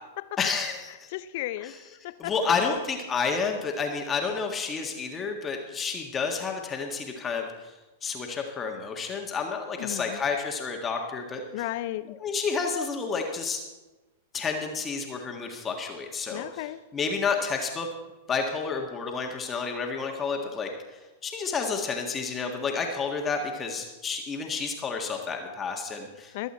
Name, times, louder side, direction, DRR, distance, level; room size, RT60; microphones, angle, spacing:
voice 1, 0.4-1.1 1.6-1.9 2.2-11.7 12.1-13.6 14.3-17.9 18.3-26.3, left 5 dB, 20° left, 2 dB, 1.6 m, -30 dB
voice 2, 1.1-1.7 2.0-2.5 9.8-10.2 11.5-12.2 16.3-16.8 26.3-26.5, left 15 dB, 55° left, 15 dB, 0.6 m, -34 dB
22.5 x 8.2 x 4.3 m, 1.2 s
hypercardioid pair, 105°, 0 cm